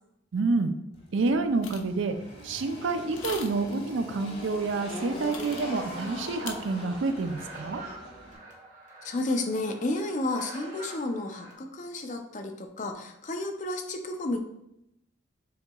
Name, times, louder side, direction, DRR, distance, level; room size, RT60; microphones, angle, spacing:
voice 1, 0.3-0.7 1.1-2.2 2.4-7.8, right 3 dB, 75° right, 8 dB, 0.4 m, -28 dB
Engine, 0.9-8.4, equal, 60° left, 1.3 m, -42 dB
sound 1, 1.6-1.9 3.1-3.7 5.2-5.9 6.5-6.6, left 6 dB, 85° left, 0.6 m, -40 dB
sound 2, 5.6-11.5, right 2 dB, 40° right, 0.9 m, -47 dB
voice 2, 9.0-14.4, left 2 dB, 40° left, 5 dB, 0.5 m, -31 dB
7.0 x 2.9 x 2.3 m, 0.82 s
head